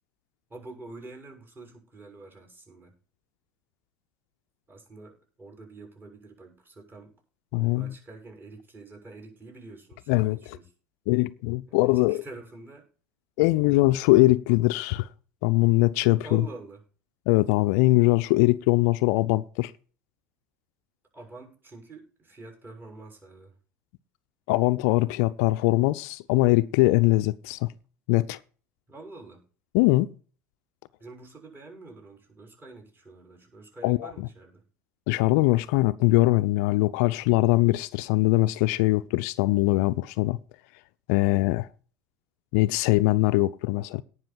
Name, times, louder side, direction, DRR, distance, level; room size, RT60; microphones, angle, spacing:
voice 1, 0.5-2.9 4.7-7.1 7.5-10.7 11.7-12.8 16.2-16.8 21.1-23.5 28.9-29.4 31.0-34.6 41.3-41.4, right 3 dB, 20° right, 6.6 m, -46 dB
voice 2, 7.5-7.9 10.1-10.4 11.1-12.2 13.4-15.1 15.4-16.5 17.3-19.7 24.5-27.7 28.1-28.4 29.7-30.1 33.8-34.3 35.1-40.4 41.1-41.7 42.5-44.0, left 19 dB, 60° left, 0.6 m, -22 dB
18.0 x 6.2 x 4.4 m
hypercardioid pair, 80°, 9 cm